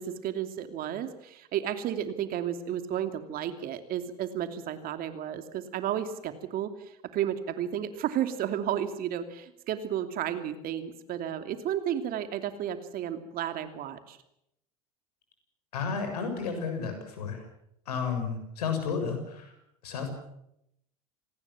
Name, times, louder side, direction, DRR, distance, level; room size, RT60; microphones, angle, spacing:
voice 1, 0.0-14.2, right 10 dB, 50° right, 9 dB, 2.9 m, -32 dB
voice 2, 15.7-17.4 17.9-19.5 19.8-20.1, left 5 dB, 80° left, 6 dB, 7.2 m, -32 dB
27.0 x 19.0 x 7.3 m, 0.78 s
hypercardioid pair, 80°, 20 cm